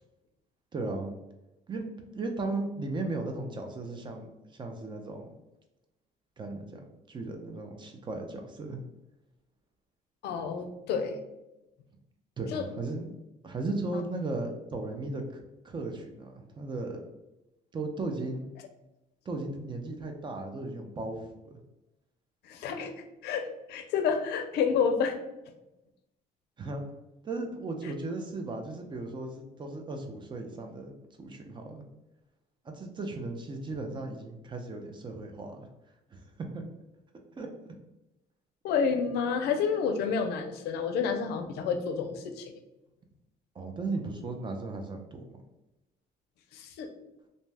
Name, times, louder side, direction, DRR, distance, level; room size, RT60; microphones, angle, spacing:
voice 1, 0.7-1.1 1.7-4.3 4.5-5.3 6.4-8.8 12.4-13.1 13.4-17.1 17.7-18.5 19.3-21.6 26.6-26.8 27.2-31.8 32.6-35.7 36.1-36.6 37.3-37.5 43.6-45.4, right 2 dB, 30° right, 4 dB, 0.5 m, -36 dB
voice 2, 10.2-11.2 12.5-12.7 13.9-14.0 22.4-22.9 23.2-25.2 38.6-42.5 46.5-46.9, left 6 dB, 75° left, 6 dB, 0.4 m, -29 dB
2.6 x 2.1 x 3.2 m, 0.96 s
cardioid pair, 110°, 17 cm